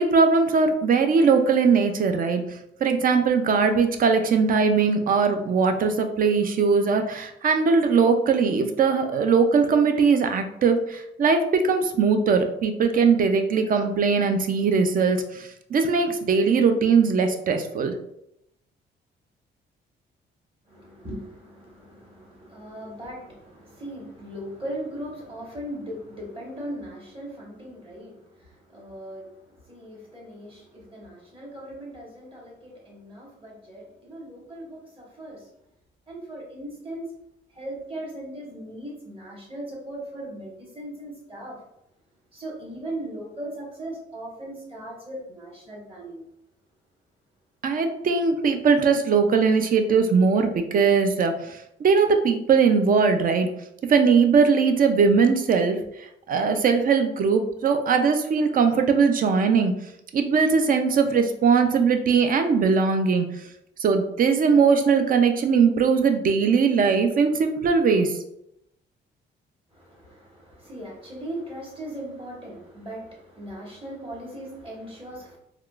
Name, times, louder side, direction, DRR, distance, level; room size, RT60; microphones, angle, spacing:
voice 1, 0.0-2.4 2.8-17.9 47.6-53.5 53.9-55.8 56.3-59.8 60.1-63.3 63.8-68.2, right 5 dB, 45° right, 7 dB, 0.4 m, -20 dB
voice 2, 20.7-35.5 36.1-37.1 37.5-41.6 42.3-46.3 69.7-75.4, right 1 dB, 30° right, -3 dB, 1.3 m, -38 dB
3.5 x 2.3 x 2.4 m, 0.79 s
cardioid pair, 90°, 20 cm